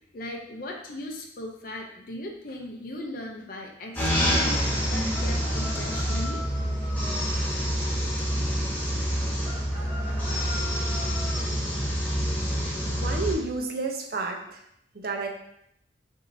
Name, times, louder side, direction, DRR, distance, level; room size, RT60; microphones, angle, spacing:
voice 1, 0.1-4.4 4.9-6.4, left 1 dB, 50° left, 0 dB, 0.5 m, -38 dB
sound 1, 4.0-13.3, equal, 10° left, 1.1 m, -27 dB
sound 2, 5.1-7.3 9.4-11.4, left 1 dB, 10° right, 0.8 m, -41 dB
voice 2, 12.9-14.6 14.9-15.3, right 3 dB, 55° right, 2 dB, 0.6 m, -30 dB
5.9 x 2.7 x 2.6 m, 0.76 s
head